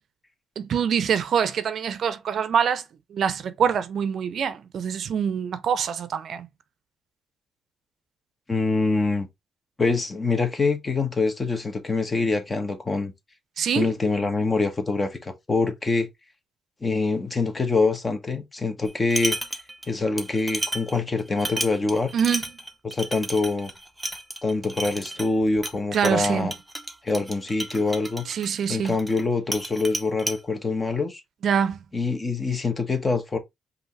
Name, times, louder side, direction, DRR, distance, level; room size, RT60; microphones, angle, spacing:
voice 1, 0.6-2.8 3.1-6.5 13.6-13.9 22.1-22.4 25.9-26.5 28.3-29.0 31.4-31.8, right 7 dB, 60° right, 0.6 m, -25 dB
voice 2, 8.5-9.3 9.8-13.1 13.7-16.1 16.8-19.4 19.9-22.1 22.8-23.7 24.4-26.5 27.0-28.2 28.7-31.2 31.9-33.4, left 3 dB, 25° left, 1.2 m, -25 dB
sound 1, 18.9-19.9 20.2-29.2 29.5-30.4, right 1 dB, 5° right, 0.8 m, -33 dB
5.3 x 2.7 x 3.1 m
cardioid pair, 90°, 0 cm